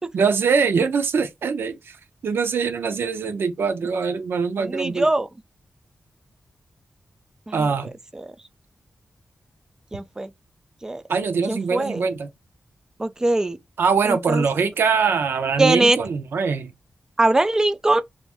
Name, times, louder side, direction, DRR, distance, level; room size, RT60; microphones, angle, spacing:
voice 1, 0.1-2.0 2.2-5.1 7.5-7.9 11.1-12.3 13.8-16.7, right 5 dB, 80° right, 0.6 m, -22 dB
voice 2, 4.6-5.3 7.5-7.7 8.1-8.3 9.9-10.3 10.8-11.0 11.5-12.0 13.0-13.6 14.0-14.4 15.6-16.0 17.2-18.0, right 2 dB, 15° right, 0.3 m, -21 dB
3.1 x 2.5 x 3.4 m
wide cardioid pair, 160°, 4 cm